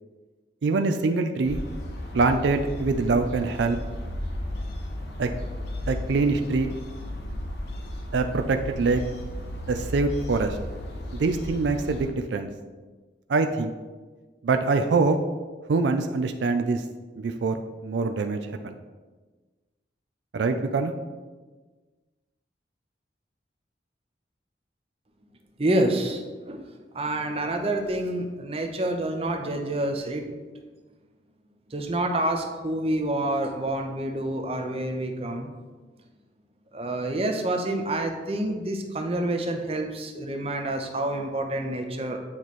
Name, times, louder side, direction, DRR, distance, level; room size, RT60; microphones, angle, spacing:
voice 1, 0.6-1.6 2.1-3.8 5.2-5.3 5.9-6.7 8.1-9.0 9.7-10.6 11.1-12.5 13.3-13.7 14.4-15.2 15.7-16.8 17.2-18.8 20.3-20.9, right 3 dB, 75° right, 6 dB, 0.4 m, -24 dB
sound 1, 1.4-12.1, left 1 dB, 65° left, 0.8 m, -34 dB
voice 2, 25.6-26.6 26.9-30.3 31.7-35.5 36.7-42.2, right 1 dB, 30° right, 3 dB, 0.6 m, -28 dB
8.7 x 3.1 x 4.1 m, 1.3 s
head